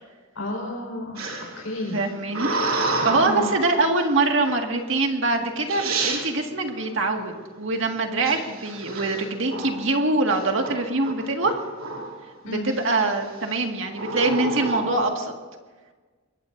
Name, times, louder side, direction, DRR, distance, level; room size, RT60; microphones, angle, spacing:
voice 1, 0.3-2.0 3.2-3.5 12.4-12.7, left 1 dB, 80° left, 0 dB, 4.7 m, -32 dB
sound 1, 1.2-3.7 4.4-4.8 5.4-5.5 5.7-6.2 8.2-9.9 10.3-10.7 11.0-12.2 12.7-13.1 13.9-15.0, right 3 dB, 85° right, 2.8 m, -29 dB
voice 2, 1.9-2.5 3.0-11.5 12.4-15.3, right 2 dB, 65° right, 3 dB, 1.9 m, -24 dB
24.0 x 21.5 x 2.6 m, 1.4 s
head